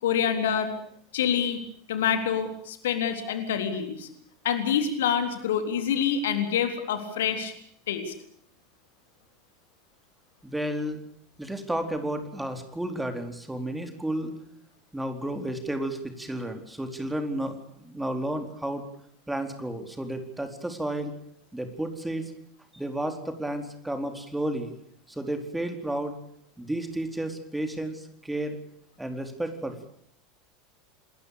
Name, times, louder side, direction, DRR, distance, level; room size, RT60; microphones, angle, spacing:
voice 1, 0.0-0.7 1.1-1.6 1.9-4.1 4.4-7.5 7.9-8.1, left 8 dB, 65° left, 7 dB, 3.7 m, -26 dB
voice 2, 10.4-11.0 11.4-14.3 14.9-17.5 17.8-18.8 19.3-21.1 21.5-22.3 22.7-24.7 25.1-26.1 26.6-28.6 29.0-29.9, right 1 dB, 5° right, 6 dB, 4.4 m, -32 dB
28.0 x 21.0 x 6.8 m, 0.67 s
figure-of-eight pair, 80°, 0 cm